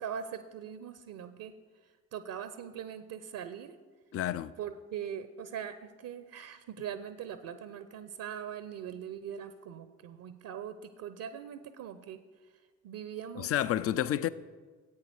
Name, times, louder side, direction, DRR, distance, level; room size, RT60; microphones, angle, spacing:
voice 1, 0.0-1.5 2.1-3.8 4.6-12.2 12.8-13.5, right 8 dB, 50° right, 0.7 m, -41 dB
voice 2, 4.1-4.5 13.4-14.3, left 11 dB, 35° left, 0.5 m, -29 dB
14.5 x 8.6 x 4.7 m
figure-of-eight pair, 40°, 43 cm